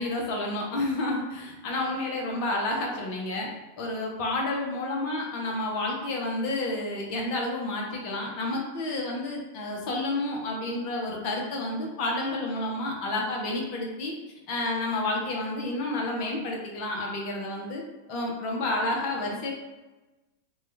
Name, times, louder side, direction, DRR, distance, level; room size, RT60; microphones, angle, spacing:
voice 1, 0.0-3.5 3.8-14.1 14.5-17.8 18.1-19.5, left 2 dB, 45° left, -1 dB, 0.8 m, -30 dB
3.1 x 2.3 x 3.3 m, 1.1 s
figure-of-eight pair, 90°, 0 cm